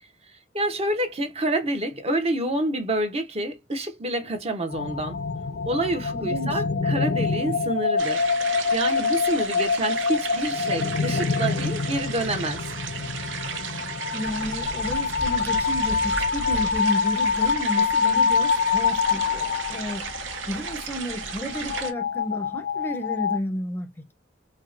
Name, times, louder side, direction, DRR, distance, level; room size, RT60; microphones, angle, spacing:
voice 1, 0.5-5.2 5.7-12.6, right 1 dB, 35° right, 0.7 m, -28 dB
sound 1, 4.7-23.4, left 5 dB, 60° left, 0.4 m, -26 dB
voice 2, 6.1-6.6 14.1-20.1 20.5-23.9, equal, 10° left, 0.5 m, -32 dB
sound 2, 8.0-21.9, right 7 dB, 90° right, 0.6 m, -35 dB
sound 3, 14.2-21.9, equal, 70° right, 1.6 m, -41 dB
4.5 x 2.1 x 2.4 m
head